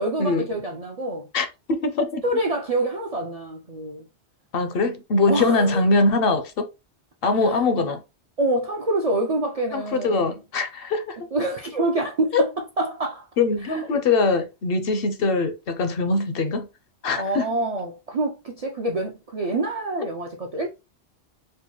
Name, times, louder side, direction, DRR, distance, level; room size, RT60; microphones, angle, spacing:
voice 1, 0.0-1.3 2.2-4.0 5.3-5.8 7.5-7.6 8.4-10.3 11.3-12.5 12.8-13.3 13.6-13.8 17.1-20.7, right 1 dB, 55° right, 0.4 m, -26 dB
voice 2, 1.3-2.2 4.5-6.7 7.2-8.0 9.7-11.2 12.3-12.4 13.4-16.7 17.0-17.5, left 3 dB, 65° left, 0.7 m, -22 dB
4.4 x 2.2 x 2.9 m
omnidirectional pair, 1.2 m